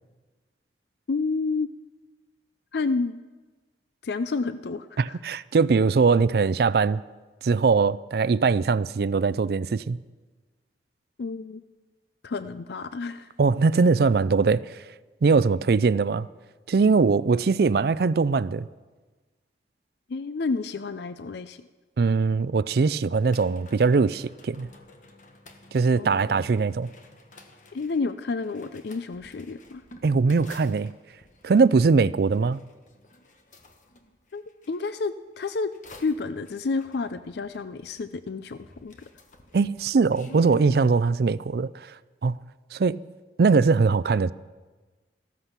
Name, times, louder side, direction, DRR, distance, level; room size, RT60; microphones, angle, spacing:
voice 1, 1.1-1.7 2.7-3.2 4.0-5.2 11.2-11.6 12.2-13.3 20.1-21.7 25.9-26.5 27.7-29.8 34.3-35.7 36.0-39.1, left 4 dB, 65° left, 0.4 m, -30 dB
voice 2, 5.0-7.0 7.4-10.0 13.4-14.8 15.2-16.3 16.7-18.7 22.0-24.7 25.7-26.9 30.0-30.9 31.4-32.6 39.5-42.4 42.7-43.0 43.4-44.3, right 4 dB, 60° right, 0.4 m, -21 dB
sound 1, 23.2-34.8 35.3-38.2 38.5-40.7, equal, 45° left, 1.3 m, -50 dB
14.5 x 13.5 x 5.9 m
head